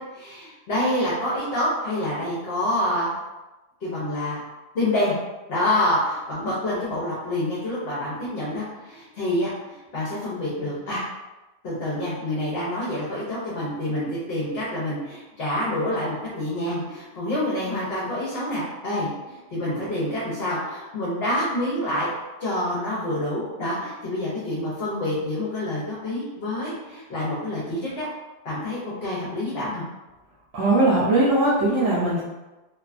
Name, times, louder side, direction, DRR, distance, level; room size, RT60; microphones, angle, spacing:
voice 1, 0.1-3.1 3.8-4.4 4.7-5.2 5.5-11.0 11.6-22.1 22.4-28.1 28.4-29.8, left 1 dB, 60° left, -8 dB, 0.8 m, -27 dB
voice 2, 30.5-32.2, right 2 dB, 90° right, -9 dB, 1.0 m, -20 dB
2.6 x 2.2 x 2.4 m, 1.1 s
omnidirectional pair, 1.3 m